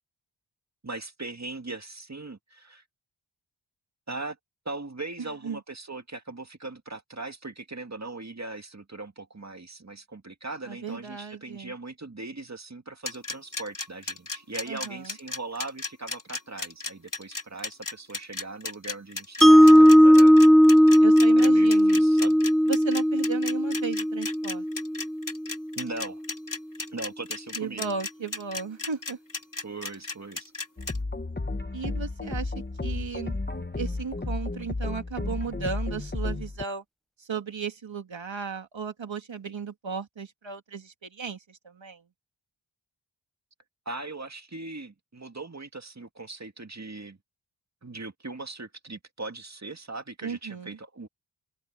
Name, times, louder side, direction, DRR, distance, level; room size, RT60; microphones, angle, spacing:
voice 1, 0.8-2.8 4.1-4.4 4.7-19.5 19.8-20.4 21.4-22.4 25.8-26.2 26.9-27.9 29.6-30.5 43.9-47.2 47.8-51.1, right 3 dB, 35° right, 2.2 m, -39 dB
voice 2, 10.7-11.7 14.7-15.1 19.4-20.4 21.0-22.1 22.7-24.7 27.6-29.2 31.7-32.5 32.8-33.3 33.8-36.8 37.2-42.0 50.2-50.8, right 5 dB, 75° right, 2.4 m, -35 dB
sound 1, 13.0-31.0, left 3 dB, 40° left, 2.8 m, -35 dB
Mallet percussion, 19.4-25.6, equal, ahead, 0.4 m, -17 dB
sound 2, 30.8-36.6, left 2 dB, 20° left, 1.2 m, -32 dB
open air
wide cardioid pair, 95°, 46 cm